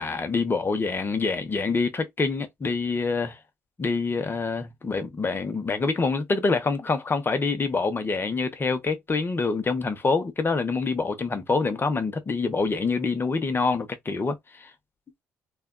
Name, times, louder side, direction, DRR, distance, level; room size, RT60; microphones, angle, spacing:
voice 1, 0.0-3.4 3.8-14.7, left 4 dB, 30° left, 0.9 m, -26 dB
3.3 x 2.3 x 2.2 m
hypercardioid pair, 50°, 7 cm